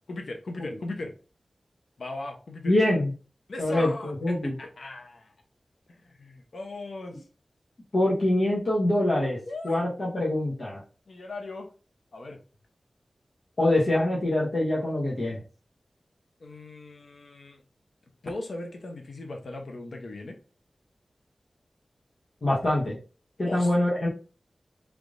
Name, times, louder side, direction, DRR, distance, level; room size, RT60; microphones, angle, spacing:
voice 1, 0.1-1.1 2.0-2.8 3.5-5.3 5.9-7.2 9.5-9.8 11.1-11.7 12.1-12.4 16.4-17.6 18.2-20.3 23.4-23.7, left 2 dB, 80° left, 3 dB, 0.8 m, -38 dB
voice 2, 2.6-3.1 3.6-4.6 7.9-9.4 9.6-10.8 13.6-15.4 22.4-23.0 23.4-24.1, left 1 dB, 60° left, -6 dB, 1.1 m, -24 dB
3.4 x 3.3 x 2.5 m, 0.36 s
wide cardioid pair, 85°, 0 cm